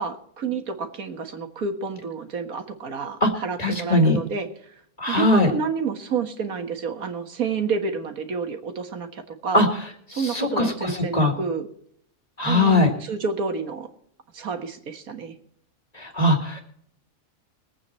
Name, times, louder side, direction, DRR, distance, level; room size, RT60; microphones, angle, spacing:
voice 1, 0.0-4.7 5.1-9.7 10.1-11.7 12.5-13.9 14.3-15.3, right 5 dB, 80° right, 6 dB, 2.0 m, -29 dB
voice 2, 3.6-4.2 5.0-5.5 9.5-9.7 10.2-11.3 12.4-12.9 16.0-16.6, left 2 dB, 25° left, 2 dB, 2.2 m, -20 dB
22.0 x 8.7 x 4.3 m, 0.66 s
omnidirectional pair, 1.5 m